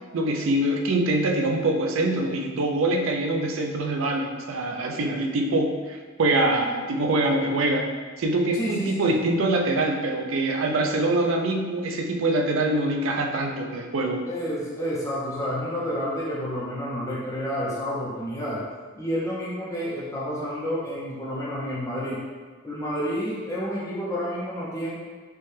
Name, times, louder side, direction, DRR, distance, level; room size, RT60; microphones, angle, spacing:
voice 1, 0.1-7.9 8.2-14.2, right 2 dB, 70° right, 2 dB, 0.4 m, -24 dB
voice 2, 8.5-9.1 14.3-18.6 19.0-22.2 22.6-24.9, equal, 15° left, -7 dB, 0.5 m, -29 dB
4.5 x 2.2 x 3.2 m, 1.5 s
head